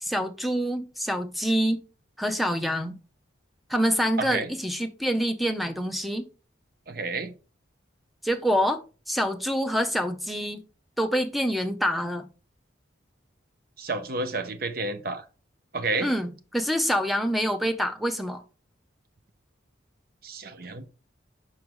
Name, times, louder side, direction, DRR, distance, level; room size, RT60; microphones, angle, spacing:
voice 1, 0.0-1.8 2.2-3.0 3.7-6.3 8.2-8.8 9.1-10.6 11.0-12.3 16.0-18.4, equal, ahead, 0.6 m, -26 dB
voice 2, 4.2-4.5 6.9-7.3 13.8-15.2 15.7-16.1 20.2-20.8, right 3 dB, 50° right, 0.8 m, -30 dB
6.1 x 4.6 x 3.7 m
head